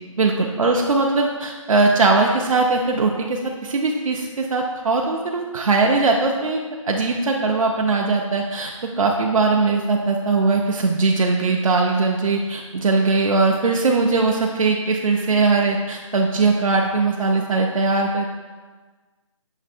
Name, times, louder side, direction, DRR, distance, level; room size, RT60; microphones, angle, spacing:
voice 1, 0.2-8.7 9.0-18.3, right 3 dB, 80° right, 1 dB, 0.5 m, -20 dB
6.5 x 2.6 x 2.5 m, 1.4 s
figure-of-eight pair, 165°, 17 cm